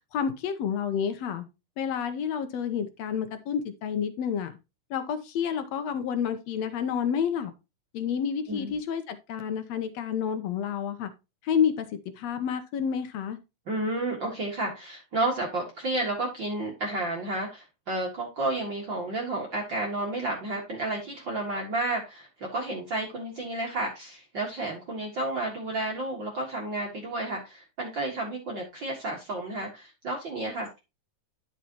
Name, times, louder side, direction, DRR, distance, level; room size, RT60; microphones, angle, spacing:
voice 1, 0.1-1.4 1.8-4.6 4.9-7.5 7.9-11.1 11.4-11.9 12.2-13.4, left 7 dB, 70° left, 10 dB, 1.7 m, -29 dB
voice 2, 13.7-30.8, right 2 dB, 40° right, -1 dB, 2.0 m, -31 dB
11.5 x 5.6 x 2.9 m, 0.26 s
omnidirectional pair, 3.8 m